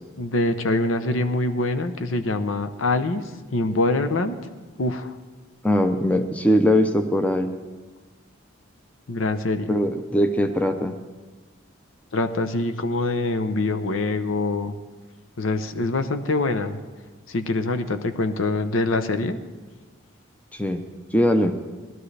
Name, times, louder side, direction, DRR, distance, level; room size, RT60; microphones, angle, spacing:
voice 1, 0.2-3.2 3.5-4.4 4.8-5.1 9.1-9.7 12.1-14.7 15.4-16.8 17.3-19.4, left 2 dB, 85° left, 9 dB, 0.8 m, -24 dB
voice 2, 5.6-7.5 9.7-10.9 20.5-20.8 21.1-21.6, equal, 5° left, 7 dB, 0.6 m, -21 dB
18.5 x 12.5 x 3.3 m, 1.3 s
head